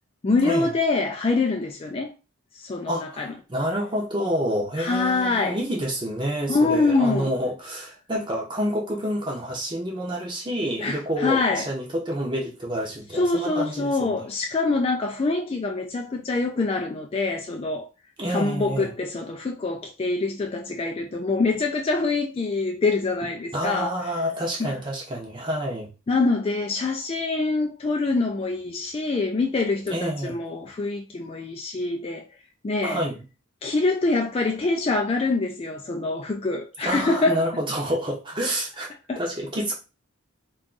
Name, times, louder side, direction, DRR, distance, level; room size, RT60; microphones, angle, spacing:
voice 1, 0.2-2.1 2.5-3.3 4.8-5.6 6.5-7.3 10.8-11.7 13.1-17.9 18.3-24.0 24.6-24.7 26.1-32.3 32.6-33.0 33.6-37.5 39.1-39.2, left 3 dB, 30° left, 0.3 m, -25 dB
voice 2, 2.9-14.2 18.2-18.9 23.5-25.9 29.9-30.4 32.8-33.2 36.5-39.7, equal, 25° right, 0.7 m, -28 dB
2.5 x 2.3 x 3.8 m
head